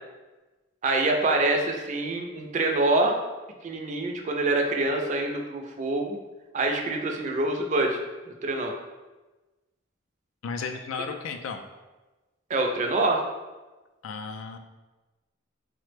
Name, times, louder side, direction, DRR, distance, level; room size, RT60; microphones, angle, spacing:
voice 1, 0.8-3.2 3.6-6.2 6.5-8.0 8.4-8.7 12.5-13.2, right 2 dB, 40° right, 2 dB, 0.3 m, -25 dB
voice 2, 10.4-11.6 14.0-14.6, left 5 dB, 85° left, 6 dB, 0.3 m, -34 dB
3.1 x 2.0 x 3.2 m, 1.2 s
head